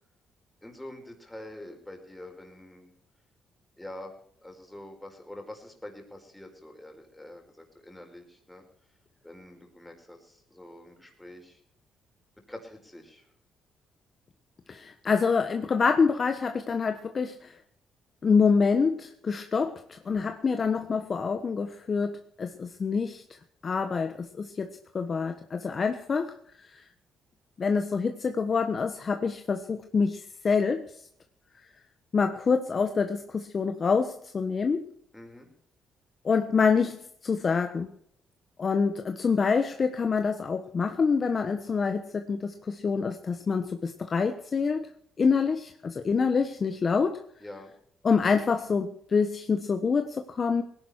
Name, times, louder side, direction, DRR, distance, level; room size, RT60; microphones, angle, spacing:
voice 1, 0.6-2.9 3.8-4.1 4.4-8.6 9.2-11.6 12.5-13.3 35.1-35.5 47.4-47.7, left 1 dB, 5° left, 3 dB, 4.9 m, -45 dB
voice 2, 14.7-17.5 18.2-23.2 23.6-26.3 26.7-26.8 27.6-30.9 32.1-34.9 36.2-37.9 38.6-44.9 45.2-47.2 48.0-50.6, left 5 dB, 40° left, 6 dB, 1.2 m, -26 dB
19.0 x 11.0 x 4.7 m, 0.65 s
cardioid pair, 90°, 0 cm